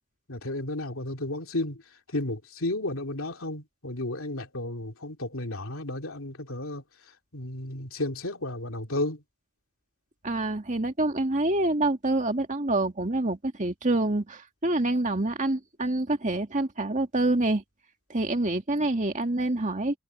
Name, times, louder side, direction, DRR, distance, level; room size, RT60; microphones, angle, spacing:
voice 1, 0.3-1.8 2.1-6.8 7.3-9.2, left 2 dB, 65° left, 2.7 m, -33 dB
voice 2, 10.2-17.6 18.1-20.0, right 2 dB, 35° right, 2.2 m, -26 dB
head